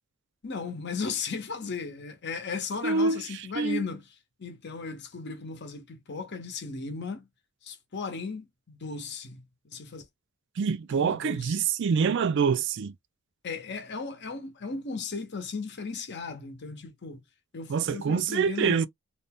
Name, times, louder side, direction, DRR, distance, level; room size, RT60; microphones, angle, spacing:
voice 1, 0.4-4.0 4.4-7.3 7.6-10.0 10.9-11.6 13.4-17.2 17.5-18.9, left 4 dB, 55° left, 0.8 m, -36 dB
voice 2, 2.8-3.2 3.6-3.9 10.6-12.9 17.7-18.9, right 5 dB, 55° right, 0.4 m, -25 dB
2.6 x 2.2 x 3.5 m
head